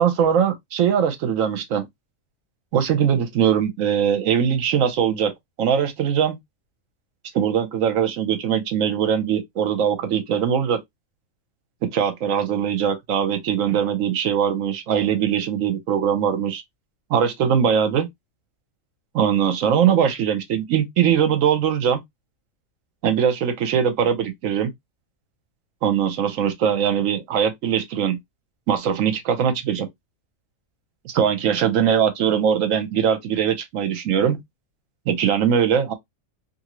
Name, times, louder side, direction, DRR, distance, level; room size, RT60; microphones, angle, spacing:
voice 1, 0.0-1.9 2.7-5.3 5.6-6.4 7.3-10.8 11.8-16.6 17.1-18.1 19.1-22.0 23.0-24.7 25.8-28.2 28.7-29.9 31.0-34.4 35.1-35.9, right 8 dB, 75° right, 1.0 m, -21 dB
2.7 x 2.5 x 2.9 m
omnidirectional pair, 1.4 m